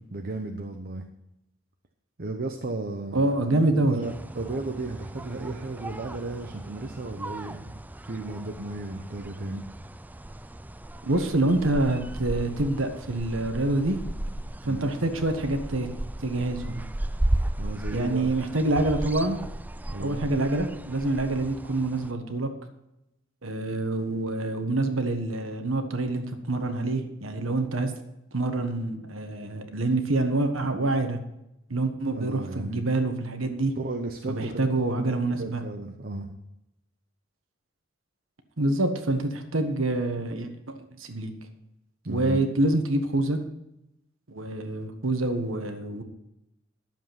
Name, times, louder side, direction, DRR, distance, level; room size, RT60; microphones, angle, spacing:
voice 1, 0.1-1.0 2.2-3.2 3.7-7.8 8.1-9.6 14.6-14.9 17.6-18.3 19.9-20.2 32.1-32.8 33.8-36.3 42.0-42.4, right 2 dB, 50° right, 4 dB, 0.9 m, -34 dB
voice 2, 3.1-4.0 11.0-14.0 14.6-15.9 16.2-16.8 17.9-19.4 20.0-22.5 23.4-27.9 28.3-31.2 31.7-33.7 34.3-35.6 38.6-41.3 42.1-43.4 44.3-46.0, right 2 dB, 80° right, 6 dB, 1.4 m, -26 dB
sound 1, 4.0-22.1, right 1 dB, 10° right, 0.3 m, -35 dB
12.0 x 7.4 x 5.9 m, 0.86 s
head